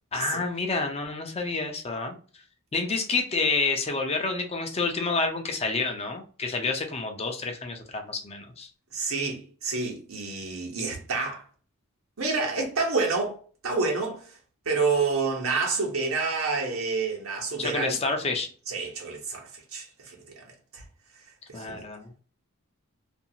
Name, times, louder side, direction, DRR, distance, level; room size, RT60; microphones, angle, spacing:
voice 1, 0.1-2.2 2.7-8.7 17.6-18.5 21.5-22.1, left 3 dB, 30° left, 0.5 m, -29 dB
voice 2, 8.9-11.4 12.2-14.3 14.6-18.0 18.7-20.4 20.7-20.8 21.5-21.8, right 4 dB, 70° right, 1.0 m, -29 dB
2.6 x 2.4 x 2.7 m
head